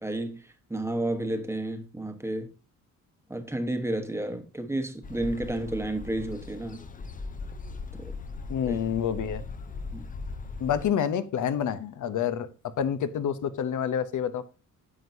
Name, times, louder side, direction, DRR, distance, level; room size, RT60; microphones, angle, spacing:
voice 1, 0.0-2.5 3.3-6.8 8.0-8.1 8.6-8.9 9.9-10.0, right 1 dB, 10° right, 1.1 m, -31 dB
sound 1, 5.0-10.9, left 4 dB, 25° left, 0.6 m, -39 dB
voice 2, 8.5-9.4 10.6-12.5 12.8-14.4, left 8 dB, 75° left, 0.8 m, -28 dB
9.8 x 7.9 x 2.7 m
wide cardioid pair, 150°, 31 cm